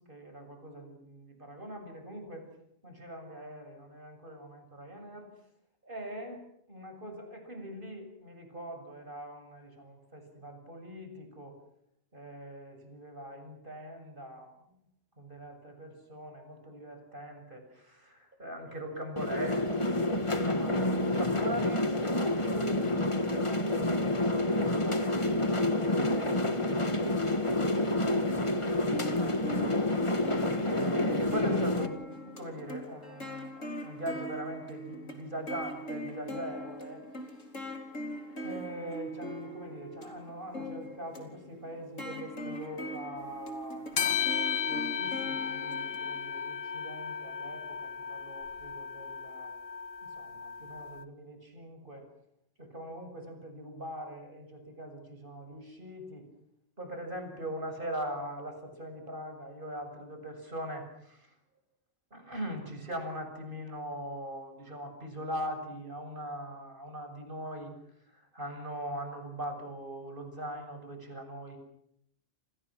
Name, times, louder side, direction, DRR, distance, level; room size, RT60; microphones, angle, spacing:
voice 1, 0.1-2.5 2.8-5.3 5.8-6.4 6.7-11.6 12.1-14.8 15.2-28.7 29.2-30.3 30.6-37.0 38.4-44.1 44.7-49.5 50.0-52.1 52.6-56.3 56.8-61.3 62.1-67.7 68.1-71.6, right 1 dB, 40° right, 5 dB, 7.4 m, -42 dB
sound 1, 19.2-31.9, left 1 dB, 25° left, 1.6 m, -28 dB
sound 2, 28.9-46.2, equal, 80° left, 4.4 m, -41 dB
sound 3, 43.9-51.0, left 7 dB, 50° left, 1.6 m, -35 dB
29.5 x 28.5 x 6.3 m, 0.74 s
omnidirectional pair, 1.3 m